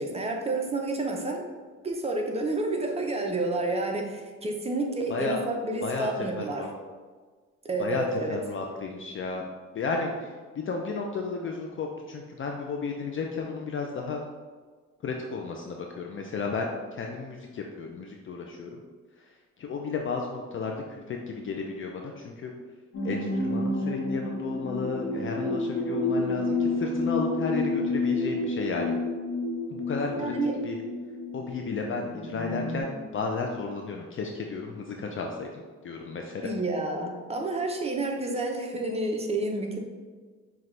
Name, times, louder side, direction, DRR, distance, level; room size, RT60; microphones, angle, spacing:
voice 1, 0.0-1.4 1.8-6.7 7.6-8.4 30.1-30.6 36.4-39.8, right 2 dB, 20° right, 2 dB, 0.7 m, -29 dB
voice 2, 5.1-5.4 5.8-6.7 7.8-9.4 9.7-14.2 15.0-18.8 19.6-22.5 23.0-29.0 29.7-30.3 30.6-30.8 31.3-36.5, left 4 dB, 40° left, 1 dB, 0.5 m, -33 dB
sound 1, 22.9-32.8, left 2 dB, 75° left, 1.1 m, -30 dB
5.8 x 2.4 x 3.2 m, 1.4 s
cardioid pair, 90°, 31 cm